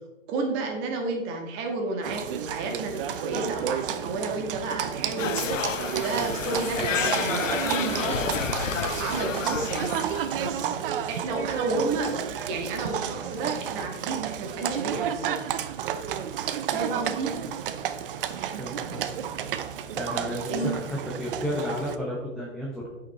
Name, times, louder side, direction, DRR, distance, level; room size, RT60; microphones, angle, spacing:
voice 1, 0.3-5.6 6.0-8.7 9.0-10.8 11.1-12.1 12.5-15.3 16.7-17.3 20.1-20.2 20.5-20.7, right 3 dB, 30° right, 2 dB, 1.7 m, -31 dB
Livestock farm animals working animals, 2.0-22.0, right 9 dB, 45° right, 0.6 m, -31 dB
sound 1, 5.2-10.4, left 7 dB, 80° left, 0.8 m, -30 dB
voice 2, 18.6-19.1 20.0-20.8 21.2-22.9, equal, ahead, -5 dB, 0.9 m, -32 dB
8.5 x 5.7 x 4.2 m, 1.2 s
hypercardioid pair, 130°, 38 cm